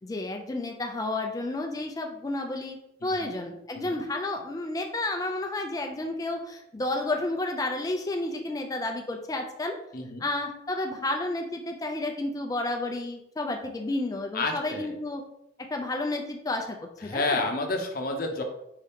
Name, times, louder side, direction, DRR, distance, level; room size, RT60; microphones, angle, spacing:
voice 1, 0.0-9.7 10.2-15.2 15.7-16.8 17.0-17.4, left 2 dB, 20° left, 3 dB, 0.4 m, -31 dB
voice 2, 14.3-14.9 17.0-18.4, left 2 dB, 55° left, 3 dB, 0.7 m, -30 dB
4.6 x 2.8 x 3.5 m, 0.80 s
head